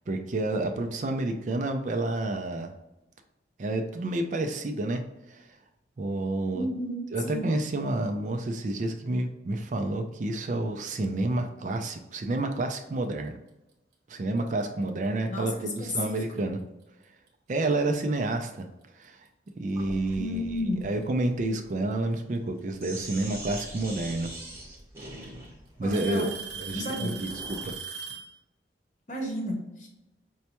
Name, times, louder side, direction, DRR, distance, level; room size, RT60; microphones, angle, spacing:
voice 1, 0.1-2.7 3.6-5.0 5.3-5.5 6.0-6.7 7.1-13.3 14.1-16.6 17.5-18.7 19.0-19.2 19.6-20.4 20.8-24.3 25.0-25.2 25.8-26.3 26.6-27.8, right 2 dB, 45° right, 5 dB, 0.4 m, -29 dB
voice 2, 6.5-7.4 15.3-16.2 20.2-20.9 25.8-26.3 26.7-27.2 29.1-29.9, left 1 dB, 45° left, 0 dB, 0.8 m, -32 dB
Alarm / Tick-tock, 14.4-14.6 15.5-15.6 16.4-16.5 18.2-18.3 19.5-19.6 20.8-21.3 23.0-23.1 24.4-24.5 24.8-25.2 25.9-28.3, right 6 dB, 65° right, 0.9 m, -39 dB
Sink (filling or washing), 19.7-27.8, right 1 dB, 15° right, 0.8 m, -43 dB
5.3 x 2.2 x 2.9 m, 0.94 s
head